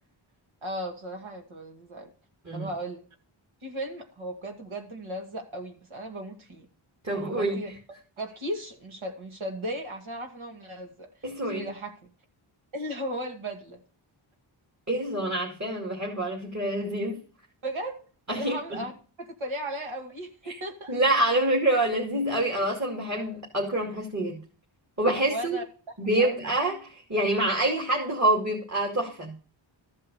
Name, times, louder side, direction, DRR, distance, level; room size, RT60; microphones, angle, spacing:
voice 1, 0.6-2.1 2.5-3.0 3.6-6.7 7.1-7.7 8.2-11.1 11.5-12.1 12.7-13.8 17.6-18.0 18.4-18.9 19.2-21.0 22.6-22.7 25.2-25.7 26.1-26.4, right 1 dB, 75° right, 2 dB, 2.4 m, -36 dB
voice 2, 7.0-7.6 11.2-11.7 14.9-17.2 18.3-18.8 20.5-20.6 20.9-24.4 25.0-25.6 26.0-29.3, right 1 dB, 35° right, -2 dB, 2.7 m, -26 dB
14.0 x 5.5 x 7.0 m, 0.38 s
wide cardioid pair, 105°, 49 cm